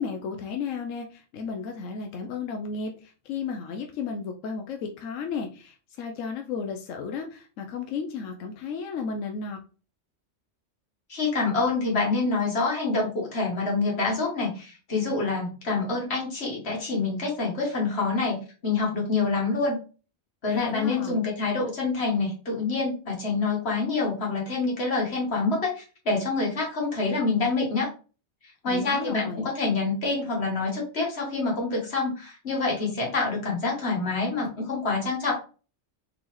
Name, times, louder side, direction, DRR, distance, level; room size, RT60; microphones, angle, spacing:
voice 1, 0.0-9.6 20.5-21.2 28.7-29.5, left 5 dB, 90° left, 3 dB, 1.0 m, -33 dB
voice 2, 11.1-19.8 20.4-27.9 28.6-35.3, left 3 dB, 60° left, -2 dB, 1.4 m, -26 dB
3.8 x 3.8 x 3.0 m, 0.36 s
omnidirectional pair, 1.3 m